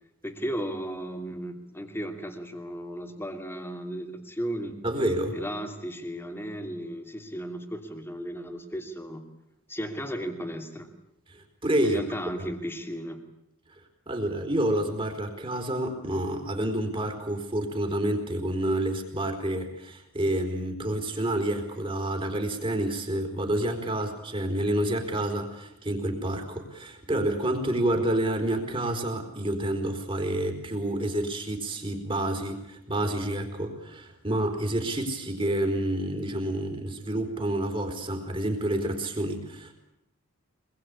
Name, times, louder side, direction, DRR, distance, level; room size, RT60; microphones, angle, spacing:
voice 1, 0.2-4.8 5.3-9.2 9.7-10.9 11.8-13.2, equal, 10° left, 5 dB, 2.7 m, -35 dB
voice 2, 4.8-5.4 11.3-12.0 12.4-12.5 14.1-39.7, right 1 dB, 25° right, 4 dB, 4.2 m, -29 dB
25.5 x 21.5 x 8.6 m, 0.83 s
head